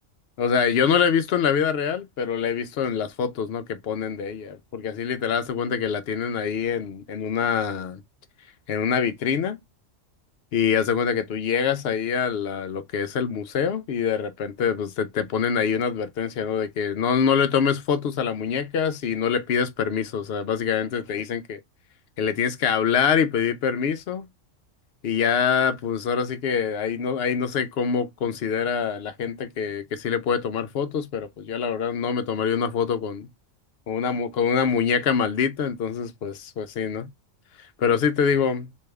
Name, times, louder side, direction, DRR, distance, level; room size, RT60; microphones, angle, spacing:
voice 1, 0.4-8.0 8.7-9.6 10.5-21.6 22.2-24.3 25.0-33.3 33.9-37.1 37.8-38.7, left 7 dB, 60° left, 0.7 m, -25 dB
3.3 x 2.7 x 3.4 m
omnidirectional pair, 1.4 m